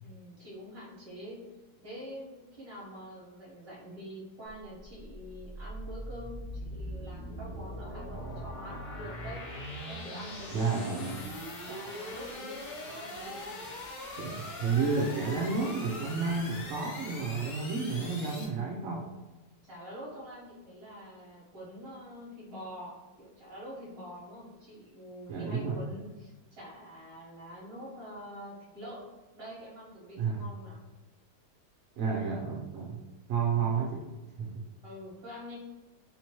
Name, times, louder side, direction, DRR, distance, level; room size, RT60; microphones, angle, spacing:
voice 1, 0.0-1.4 1.8-9.4 9.9-11.1 11.6-12.6 12.8-13.7 19.6-29.0 29.3-30.8 34.8-35.6, equal, 40° right, -6 dB, 1.4 m, -46 dB
sound 1, 4.4-18.4, left 1 dB, 65° left, 0.4 m, -41 dB
voice 2, 10.5-11.2 14.2-19.1 25.3-25.8 30.2-30.4 32.0-33.0 33.3-34.0 34.4-34.6, right 5 dB, 65° right, -3 dB, 0.9 m, -31 dB
3.7 x 2.9 x 2.9 m, 1.1 s
omnidirectional pair, 1.8 m